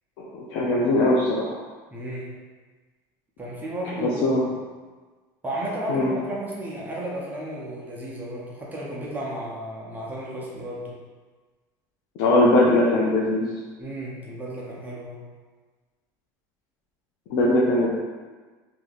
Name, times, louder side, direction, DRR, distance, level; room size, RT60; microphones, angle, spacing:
voice 1, 0.2-1.6 4.0-4.4 5.9-6.1 12.2-13.5 17.3-17.9, left 1 dB, 70° left, -6 dB, 0.7 m, -20 dB
voice 2, 1.9-2.3 3.4-4.6 5.4-11.0 13.8-15.2, right 1 dB, 20° right, -5 dB, 0.7 m, -33 dB
2.8 x 2.6 x 4.0 m, 1.4 s
supercardioid pair, 125°, 10 cm